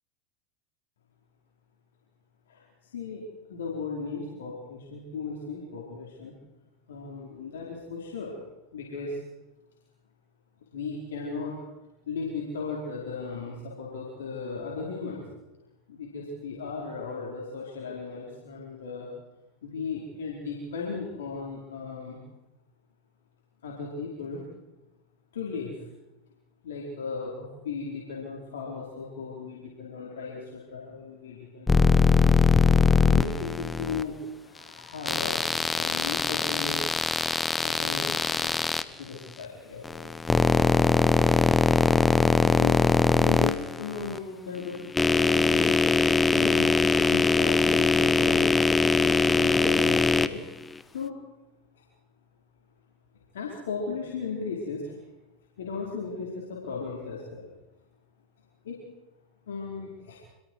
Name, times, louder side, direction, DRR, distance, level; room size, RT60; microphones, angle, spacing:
voice 1, 2.9-3.2 3.5-6.4 6.9-8.3 8.7-9.2 10.7-11.5 12.1-15.2 15.9-19.1 19.6-22.2 23.6-24.4 25.3-25.8 26.6-31.9 33.0-36.8 37.6-38.6 38.8-40.1 42.5-45.8 46.1-48.5 49.0-50.4 50.9-51.2 51.7-51.8 53.3-54.9 55.6-57.5 58.6-58.8 59.5-60.2, left 4 dB, 80° left, -3 dB, 4.8 m, -36 dB
sound 1, 31.7-34.0 35.0-38.8 39.8-44.2 44.7-50.3, left 4 dB, 15° left, 1.1 m, -22 dB
27.5 x 22.5 x 4.9 m, 0.98 s
hypercardioid pair, 90°, 0 cm